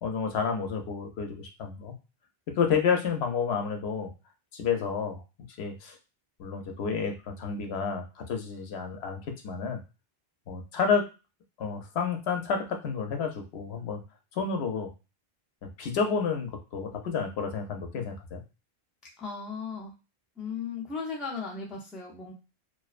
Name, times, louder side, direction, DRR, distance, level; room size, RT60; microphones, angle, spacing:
voice 1, 0.0-1.9 2.6-4.1 4.5-5.2 5.6-6.0 6.4-9.8 10.5-11.0 11.6-14.0 14.3-14.9 15.6-18.4, left 6 dB, 85° left, 4 dB, 0.9 m, -30 dB
voice 2, 19.2-19.9 20.4-22.3, left 5 dB, ahead, -3 dB, 0.3 m, -36 dB
2.5 x 2.1 x 2.4 m, 0.29 s
omnidirectional pair, 1.0 m